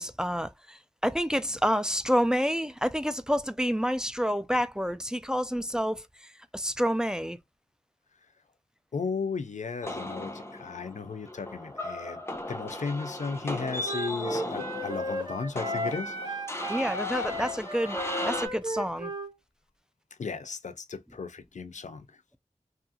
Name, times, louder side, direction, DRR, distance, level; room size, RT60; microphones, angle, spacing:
voice 1, 0.0-7.4 16.7-18.0 18.2-19.1, equal, 5° right, 0.4 m, -28 dB
voice 2, 8.9-12.2 12.5-16.5 20.2-22.0, left 5 dB, 85° left, 0.4 m, -35 dB
sound 1, 9.8-18.5, left 1 dB, 20° left, 0.7 m, -37 dB
Wind instrument woodwind instrument, 13.8-19.3, equal, 40° right, 1.2 m, -34 dB
2.7 x 2.4 x 2.6 m
wide cardioid pair, 50°, 12 cm